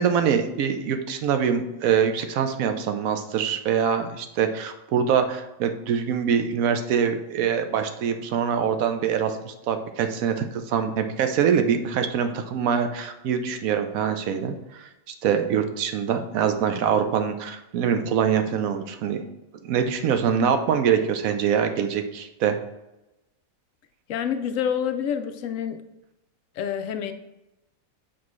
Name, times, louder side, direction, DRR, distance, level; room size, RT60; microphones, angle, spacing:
voice 1, 0.0-14.9 15.2-19.2 19.6-22.6, right 7 dB, 80° right, 7 dB, 1.1 m, -24 dB
voice 2, 24.1-25.8 26.6-27.1, left 8 dB, 70° left, 8 dB, 0.9 m, -27 dB
7.2 x 4.3 x 3.1 m, 0.94 s
omnidirectional pair, 1.5 m